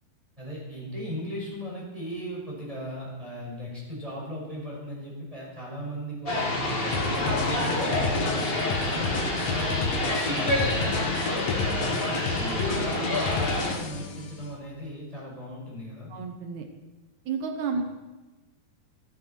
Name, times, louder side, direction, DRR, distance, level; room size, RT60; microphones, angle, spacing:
voice 1, 0.4-6.7 7.0-8.5 8.8-10.7 11.0-16.1, equal, 10° right, -4 dB, 5.4 m, -37 dB
sound 1, 6.3-13.7, left 2 dB, 35° left, 0.9 m, -28 dB
sound 2, 6.4-14.3, left 3 dB, 55° left, 2.3 m, -43 dB
sound 3, 6.9-14.2, left 4 dB, 75° left, 1.5 m, -31 dB
voice 2, 16.1-16.7 17.3-17.8, right 5 dB, 90° right, 5 dB, 1.6 m, -31 dB
15.5 x 14.5 x 4.4 m, 1.1 s
omnidirectional pair, 5.0 m